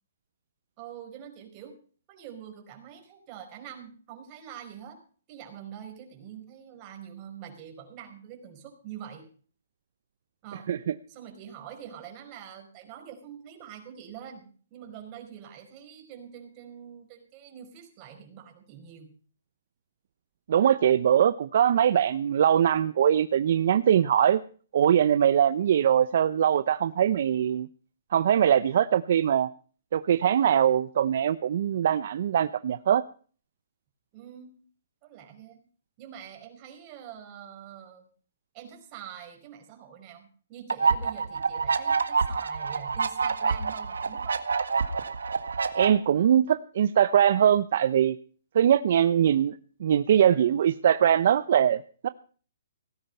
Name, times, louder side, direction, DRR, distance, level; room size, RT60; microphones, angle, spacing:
voice 1, 0.8-1.8 2.1-5.0 5.3-9.3 10.4-10.7 11.1-19.1 34.1-34.6 35.0-35.7 36.0-38.1 38.5-44.4, right 9 dB, 30° right, 4 dB, 5.2 m, -45 dB
voice 2, 20.5-24.4 24.7-27.7 28.1-29.5 29.9-33.0 45.7-48.2 48.5-52.1, right 9 dB, 60° right, 14 dB, 0.7 m, -22 dB
sound 1, 40.7-45.9, right 5 dB, 90° right, 1.7 m, -27 dB
18.0 x 10.0 x 5.5 m, 0.41 s
hypercardioid pair, 145°, 0 cm